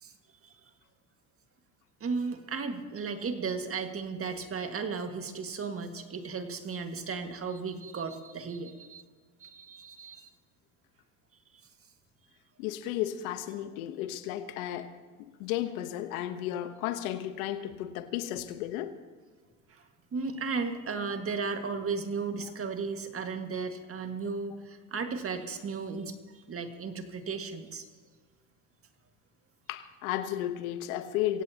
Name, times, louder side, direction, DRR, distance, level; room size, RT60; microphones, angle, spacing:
voice 1, 2.0-9.0 9.4-10.3 19.7-19.8 20.1-26.1 26.5-27.8, right 4 dB, 30° right, 6 dB, 1.9 m, -35 dB
voice 2, 12.6-14.9 15.4-18.9 29.7-31.4, left 12 dB, 75° left, 10 dB, 1.3 m, -33 dB
24.5 x 16.5 x 3.0 m, 1.5 s
hypercardioid pair, 85°, 42 cm